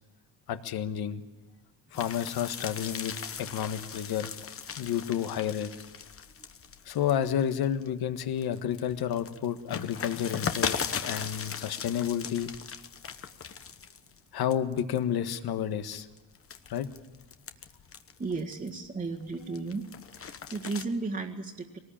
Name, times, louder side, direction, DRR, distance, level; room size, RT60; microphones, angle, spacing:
voice 1, 0.5-1.2 1.9-3.1 3.4-4.4 4.8-5.7 6.8-12.5 14.3-16.1 16.7-16.9, left 9 dB, 55° left, 10 dB, 1.5 m, -30 dB
sound 1, 1.9-7.9 8.3-14.2 14.5-15.0 15.6-18.9 19.3-20.8, left 7 dB, 30° left, 1.1 m, -38 dB
voice 2, 18.2-19.9 20.1-21.8, right 3 dB, 20° right, -3 dB, 1.9 m, -34 dB
23.5 x 19.5 x 8.8 m, 1.1 s
cardioid pair, 145°, 45 cm